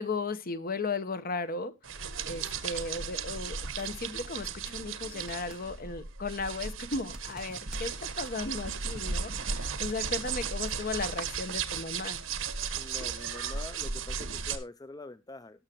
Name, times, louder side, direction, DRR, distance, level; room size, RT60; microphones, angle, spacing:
voice 1, 0.0-1.7 2.3-12.2, left 3 dB, 45° left, 0.9 m, -35 dB
sound 1, 1.8-14.6, right 6 dB, 75° right, 1.4 m, -35 dB
sound 2, 5.1-5.7 7.0-7.9 10.9-11.0, right 1 dB, 5° right, 1.1 m, -51 dB
voice 2, 12.8-15.6, left 2 dB, 20° left, 0.4 m, -45 dB
19.0 x 6.5 x 2.9 m
head